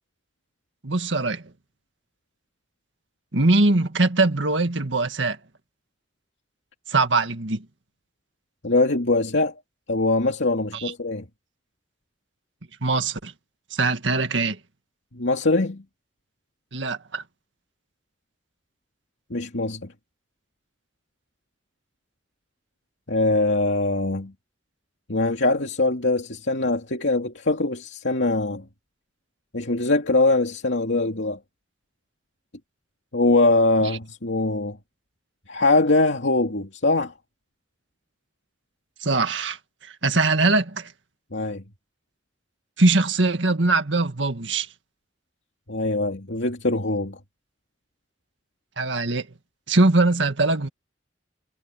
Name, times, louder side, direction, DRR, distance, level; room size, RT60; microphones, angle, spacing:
voice 1, 0.8-1.4 3.3-5.4 6.9-7.7 10.7-10.9 12.8-13.3 13.7-14.6 16.7-17.2 39.0-40.9 42.8-44.7 48.8-49.3 49.7-50.7, right 3 dB, 80° right, 1.9 m, -22 dB
voice 2, 8.6-9.5 9.9-11.3 15.1-15.8 19.3-19.9 23.1-24.3 25.1-28.6 29.5-31.4 33.1-34.8 35.5-37.1 41.3-41.6 45.7-47.2, left 2 dB, 75° left, 2.5 m, -22 dB
head